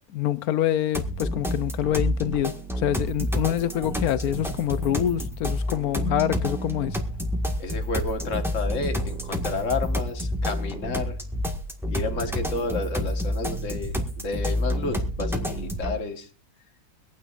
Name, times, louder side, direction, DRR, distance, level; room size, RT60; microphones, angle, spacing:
voice 1, 0.1-6.9, left 12 dB, 75° left, 1.2 m, -26 dB
sound 1, 0.9-15.9, equal, ahead, 1.6 m, -29 dB
voice 2, 7.6-11.2 11.9-16.3, left 3 dB, 55° left, 1.9 m, -31 dB
24.5 x 9.3 x 2.5 m
omnidirectional pair, 1.6 m